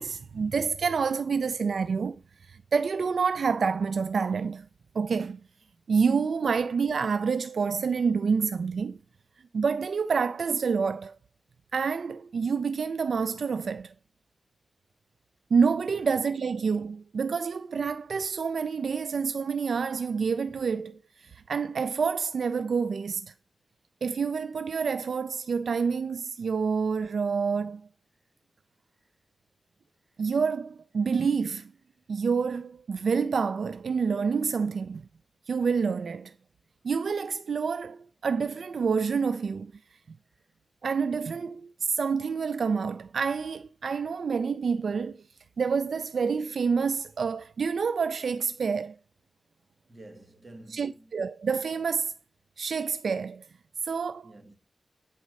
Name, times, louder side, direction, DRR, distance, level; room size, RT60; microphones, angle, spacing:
voice 1, 0.0-2.2 2.5-4.7 4.9-5.4 5.9-9.0 9.5-11.2 11.7-13.9 15.5-23.3 24.0-27.8 30.2-31.7 32.1-35.0 35.5-36.3 36.8-39.7 40.8-45.2 45.6-49.0 50.7-52.1 52.6-53.4 53.8-54.3, right 5 dB, 70° right, 0.3 m, -28 dB
voice 2, 49.9-51.1 54.2-54.6, right 1 dB, 25° right, 1.7 m, -50 dB
8.9 x 4.2 x 6.3 m
wide cardioid pair, 120°, 0 cm